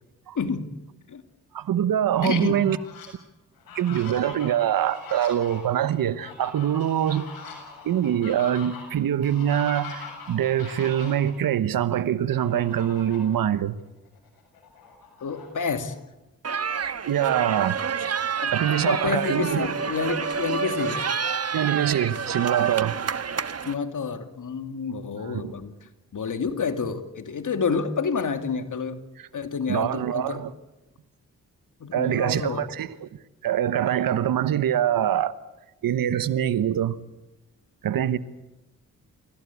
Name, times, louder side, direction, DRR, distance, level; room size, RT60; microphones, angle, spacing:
voice 1, 0.3-0.7 1.1-1.2 2.2-2.6 15.2-16.0 18.4-21.0 23.6-25.8 26.1-29.0 29.3-30.4 31.8-32.6, left 5 dB, 60° left, 2.6 m, -29 dB
voice 2, 1.5-2.8 3.7-7.2 7.8-13.8 17.0-17.8 18.5-19.7 21.5-23.0 25.2-25.5 29.7-30.5 31.9-33.1 33.4-35.4 35.8-37.0 37.8-38.2, right 10 dB, 80° right, 1.2 m, -24 dB
Fowl, 2.0-3.1 3.6-11.3 12.3-13.4 13.8-13.9 14.3-16.0, left 5 dB, 90° left, 7.4 m, -42 dB
sound 1, 16.4-23.7, right 6 dB, 45° right, 1.3 m, -28 dB
28.5 x 17.0 x 8.5 m
supercardioid pair, 50°, 34 cm